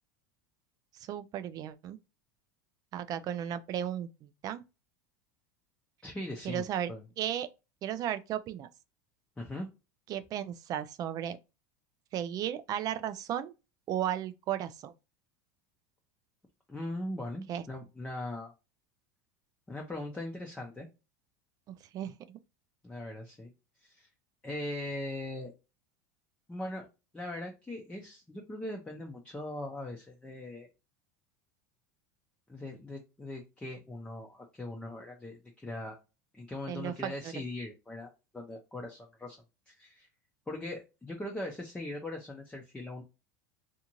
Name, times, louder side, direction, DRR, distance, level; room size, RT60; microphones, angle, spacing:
voice 1, 0.9-2.0 2.9-4.6 6.4-6.9 7.2-7.5 7.8-8.7 10.1-11.4 12.1-13.5 13.9-14.9 17.5-17.6 21.7-22.4 36.7-37.3, right 10 dB, 40° right, 0.4 m, -35 dB
voice 2, 6.0-7.0 9.4-9.7 16.7-18.5 19.7-20.9 22.8-23.5 23.8-24.1 24.4-25.5 26.5-26.9 27.1-30.7 32.5-36.0 36.3-39.4 39.7-40.1 40.5-43.0, left 1 dB, 10° left, 0.6 m, -40 dB
2.6 x 2.5 x 2.9 m
supercardioid pair, 105°, 9 cm